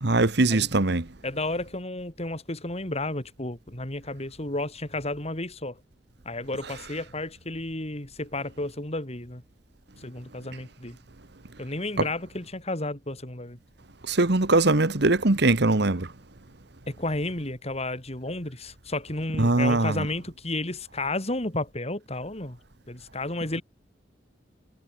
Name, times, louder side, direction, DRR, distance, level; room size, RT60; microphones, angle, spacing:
voice 1, 0.0-1.1 14.1-16.1 19.4-20.1, right 2 dB, 60° right, 1.5 m, -21 dB
voice 2, 1.2-5.8 6.3-9.4 10.0-11.0 11.6-13.6 16.9-22.6 22.9-23.6, left 2 dB, 35° left, 3.7 m, -32 dB
head